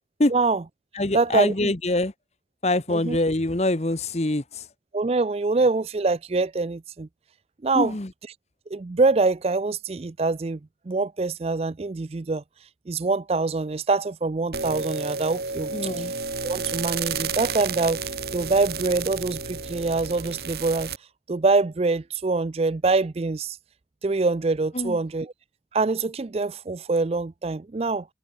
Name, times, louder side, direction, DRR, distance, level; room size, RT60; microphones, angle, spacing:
voice 1, 0.3-0.6 1.1-1.7 2.9-3.2 4.9-7.1 7.6-7.9 8.7-10.6 10.9-12.4 12.9-16.0 16.4-18.0 18.3-20.9 21.3-23.6 24.0-25.3 25.7-28.1, right 3 dB, 35° right, 0.4 m, -24 dB
voice 2, 0.9-2.1 2.6-4.7 7.7-8.1 15.7-16.1 24.7-25.0, left 2 dB, 35° left, 1.1 m, -24 dB
sound 1, 14.5-21.0, right 5 dB, 60° right, 2.3 m, -31 dB
head